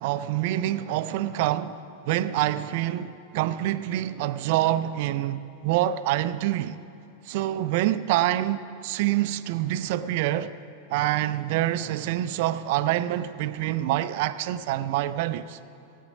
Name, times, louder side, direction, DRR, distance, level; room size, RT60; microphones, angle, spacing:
voice 1, 0.0-6.8 7.2-10.5 10.9-15.6, right 13 dB, 50° right, 0.5 m, -26 dB
17.0 x 9.4 x 5.2 m
figure-of-eight pair, 90°, 0 cm